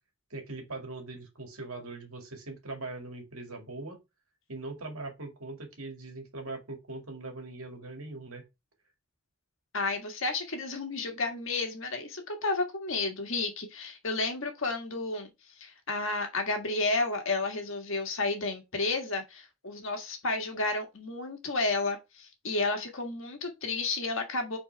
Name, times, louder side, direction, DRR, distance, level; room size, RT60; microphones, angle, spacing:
voice 1, 0.3-4.0 4.5-8.4, right 2 dB, 70° right, 2.2 m, -41 dB
voice 2, 9.7-15.3 15.6-24.6, left 3 dB, 60° left, 1.7 m, -31 dB
5.5 x 4.3 x 4.5 m
head